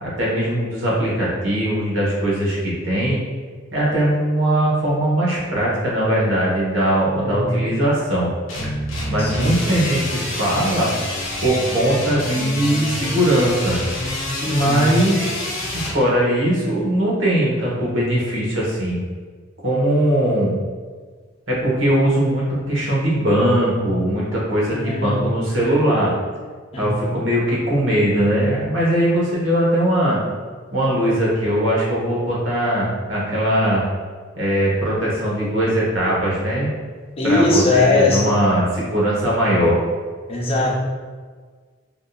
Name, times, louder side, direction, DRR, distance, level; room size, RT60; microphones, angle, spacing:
voice 1, 0.0-3.2 3.7-8.3 9.1-10.9 11.4-13.8 14.5-15.3 15.7-19.0 19.6-20.5 21.5-26.1 26.8-30.2 30.7-33.9 34.4-36.7 37.2-39.8, right 1 dB, 70° right, -5 dB, 1.1 m, -20 dB
voice 2, 7.1-7.6 9.2-9.5 14.4-15.0 24.7-25.2 26.7-26.9 37.2-38.3 40.3-40.7, left 2 dB, 30° left, -2 dB, 0.6 m, -20 dB
sound 1, 8.5-16.0, left 1 dB, 90° left, 0.8 m, -27 dB
3.6 x 2.6 x 2.3 m, 1.5 s
head